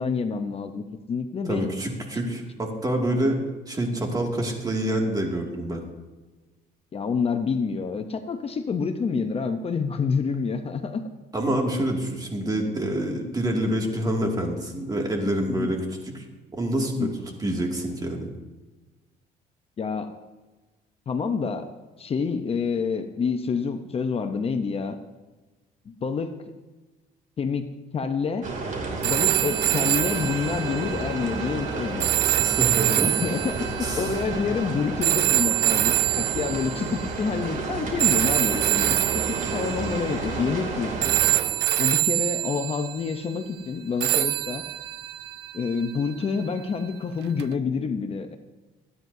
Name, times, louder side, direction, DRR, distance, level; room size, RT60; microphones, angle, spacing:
voice 1, 0.0-1.7 6.9-11.1 15.5-15.7 17.0-17.1 19.8-20.1 21.1-21.7 22.0-25.0 25.9-26.4 27.4-27.7 27.9-28.5 29.0-32.1 33.0-40.9 41.8-44.6 45.5-48.4, left 5 dB, 35° left, 7 dB, 0.8 m, -28 dB
voice 2, 1.4-5.8 11.3-16.2 16.5-17.1 17.4-18.3 32.2-33.1 33.8-34.2, right 1 dB, 20° right, 1 dB, 2.3 m, -27 dB
sound 1, 28.4-41.4, right 3 dB, 50° right, 2.8 m, -31 dB
sound 2, 29.0-37.2 38.0-40.7 41.0-43.1 44.0-46.2 47.4-47.5, right 16 dB, 80° right, 0.5 m, -25 dB
24.0 x 9.4 x 2.7 m, 1.2 s
cardioid pair, 110°, 17 cm